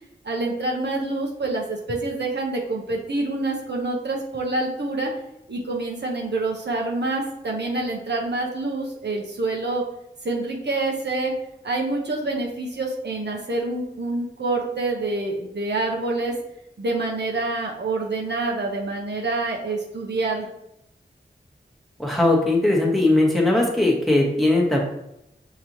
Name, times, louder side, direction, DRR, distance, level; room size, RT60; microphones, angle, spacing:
voice 1, 0.2-5.1 5.5-9.8 10.2-11.3 11.6-16.3 16.8-20.5, right 2 dB, 65° right, -1 dB, 0.8 m, -27 dB
voice 2, 22.0-24.8, left 2 dB, ahead, -1 dB, 1.1 m, -19 dB
5.9 x 3.0 x 2.7 m, 0.83 s
wide cardioid pair, 50°, 19 cm